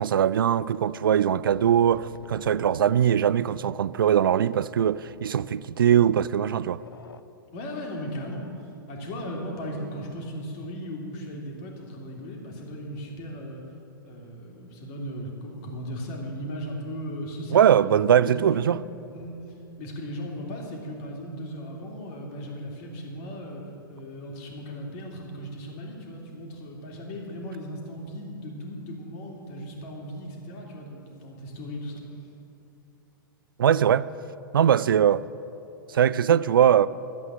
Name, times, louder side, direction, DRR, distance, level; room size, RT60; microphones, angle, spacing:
voice 1, 0.0-6.8 17.5-18.8 33.6-34.1 34.5-35.2 35.9-36.9, right 9 dB, 75° right, 0.4 m, -21 dB
sound 1, 1.5-3.4 3.8-3.9 4.2-4.3 5.2-5.3 6.8-7.2, left 5 dB, 85° left, 0.6 m, -47 dB
voice 2, 7.5-13.6 14.0-17.9 18.2-18.7 19.1-19.3 19.8-23.6 23.9-32.0, equal, 45° left, 2.7 m, -37 dB
12.5 x 8.3 x 7.6 m
figure-of-eight pair, 110°, 12 cm